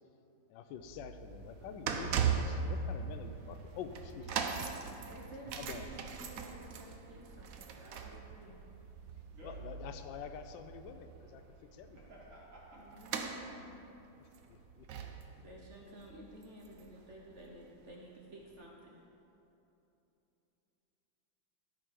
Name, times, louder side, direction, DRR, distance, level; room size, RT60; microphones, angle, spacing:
voice 1, 0.5-4.8 5.5-5.9 9.4-12.0 14.2-14.9, left 8 dB, 75° left, 8 dB, 1.2 m, -47 dB
sound 1, 0.8-17.1 17.4-17.6 18.4-18.5, right 6 dB, 85° right, 0.7 m, -40 dB
voice 2, 4.2-8.6 12.7-13.7 15.4-19.1, right 1 dB, 50° right, -2 dB, 0.9 m, -52 dB
voice 3, 11.9-12.9, equal, 70° right, -5 dB, 2.6 m, -54 dB
13.5 x 5.1 x 4.6 m, 2.9 s
omnidirectional pair, 2.2 m